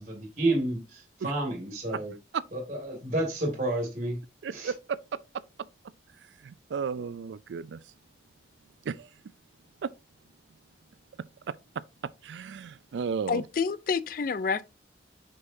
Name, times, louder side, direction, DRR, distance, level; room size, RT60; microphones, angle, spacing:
voice 1, 0.0-2.1 2.5-4.2 4.5-4.7, right 1 dB, 40° right, 2.2 m, -30 dB
voice 2, 4.4-5.0 6.4-7.8 8.8-9.1 9.8-9.9 12.0-13.4, right 6 dB, 75° right, 0.4 m, -34 dB
voice 3, 13.3-14.6, left 5 dB, 50° left, 0.4 m, -28 dB
6.7 x 5.4 x 2.6 m
head